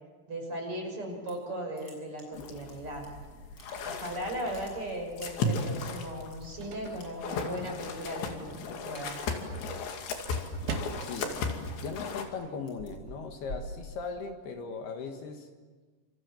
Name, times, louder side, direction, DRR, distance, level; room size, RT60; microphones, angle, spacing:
voice 1, 0.3-3.1 3.8-8.5 8.8-9.2, equal, 30° right, 2 dB, 6.8 m, -37 dB
sound 1, 1.0-1.5 1.7-3.1 3.4-4.1 4.4-6.4 7.0-7.6 7.9-8.2 8.5-9.6 10.0-14.5, equal, 25° left, 7.6 m, -48 dB
sound 2, 2.3-12.2, left 3 dB, 90° left, 4.7 m, -36 dB
sound 3, 6.2-11.4, right 4 dB, 60° right, 3.7 m, -44 dB
voice 2, 11.0-15.5, left 5 dB, 70° left, 4 dB, 3.7 m, -39 dB
29.0 x 27.5 x 7.4 m, 1.4 s
omnidirectional pair, 5.0 m